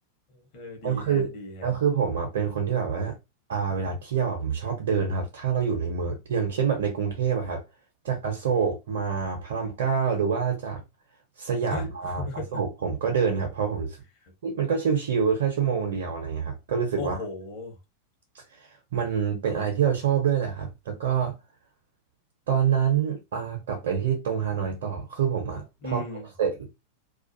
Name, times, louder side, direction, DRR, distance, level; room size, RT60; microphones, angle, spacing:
voice 1, 0.3-1.7 11.7-12.5 17.0-17.8 25.8-26.3, left 2 dB, 45° left, 1.0 m, -37 dB
voice 2, 0.8-1.3 1.6-3.2 3.5-7.6 8.0-10.8 11.4-14.0 14.4-17.2 18.5-21.3 22.5-26.0 26.4-26.5, right 7 dB, 55° right, 0.8 m, -26 dB
2.4 x 2.4 x 2.6 m
figure-of-eight pair, 90°, 0 cm